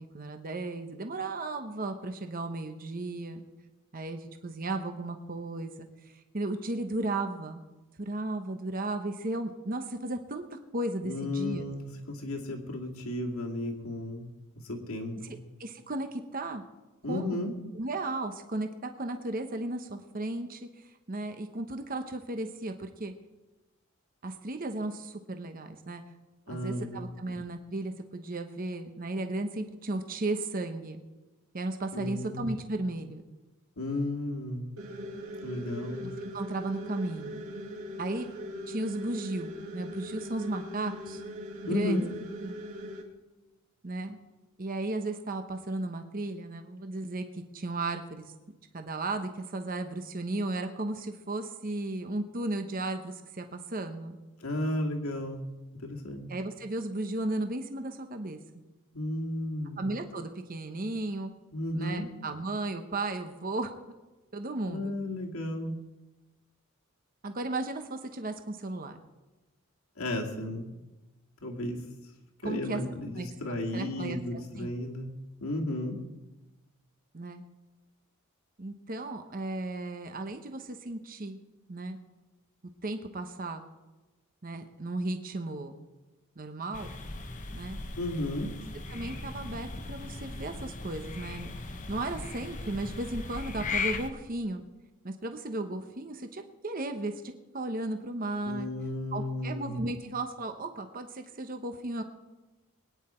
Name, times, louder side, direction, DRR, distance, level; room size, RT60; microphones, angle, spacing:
voice 1, 0.0-3.4 3.9-5.7 6.1-7.6 8.0-11.6 15.2-16.6 17.1-17.4 17.7-23.1 24.2-26.0 26.5-31.0 31.5-33.2 36.0-37.4 38.0-38.3 38.7-41.2 41.6-42.0 42.4-42.5 43.8-44.2 44.6-48.3 48.7-54.2 56.3-58.4 59.8-61.3 61.7-63.7 64.3-64.9 67.2-69.0 72.4-72.8 73.2-74.7 77.1-77.4 78.6-81.4 81.7-82.0 82.8-83.7 84.4-85.7 86.4-86.9 87.5-87.8 88.9-91.5 91.9-94.6 95.0-98.7 99.1-102.0, right 2 dB, 40° right, 6 dB, 0.9 m, -35 dB
voice 2, 11.0-14.3 14.6-15.4 17.0-17.5 26.5-27.1 31.9-32.5 33.8-34.7 35.4-36.0 41.7-42.0 54.4-55.5 55.7-56.3 58.9-59.8 61.5-62.1 64.7-65.7 70.0-70.7 71.4-71.8 72.4-75.1 75.4-76.0 88.0-88.5 98.4-99.9, left 1 dB, 75° left, 0 dB, 2.3 m, -33 dB
sound 1, 34.8-43.0, equal, 75° right, 2.4 m, -40 dB
sound 2, 86.7-94.1, left 3 dB, 35° left, 1.0 m, -38 dB
21.5 x 9.7 x 4.4 m, 1.1 s
head